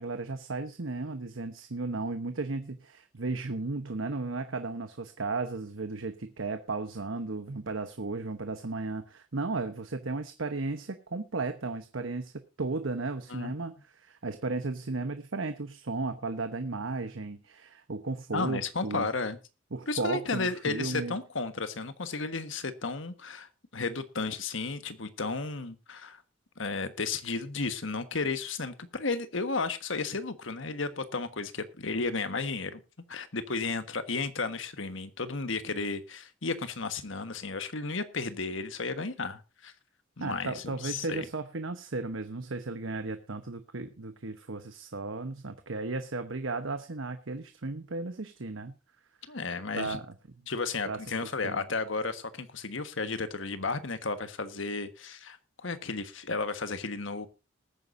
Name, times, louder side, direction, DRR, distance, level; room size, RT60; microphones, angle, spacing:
voice 1, 0.0-19.1 19.7-21.2 40.2-48.8 49.7-50.1 50.9-51.6, right 3 dB, 75° right, 1.1 m, -35 dB
voice 2, 18.3-19.4 19.9-26.2 26.6-32.8 33.1-39.7 40.2-41.2 49.3-50.0 50.5-57.3, left 4 dB, 70° left, 1.4 m, -33 dB
20.0 x 9.6 x 2.6 m
head